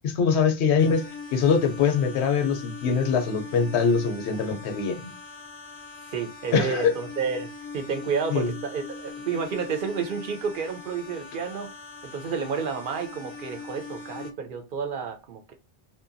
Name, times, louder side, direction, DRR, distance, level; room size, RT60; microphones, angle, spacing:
voice 1, 0.0-1.0 1.3-5.1 6.5-6.9 8.3-8.5, left 6 dB, 90° left, 0.9 m, -23 dB
sound 1, 0.8-14.3, left 4 dB, 50° left, 0.3 m, -41 dB
voice 2, 6.1-11.7 12.1-15.5, right 6 dB, 60° right, 0.6 m, -30 dB
2.7 x 2.2 x 2.5 m
omnidirectional pair, 1.1 m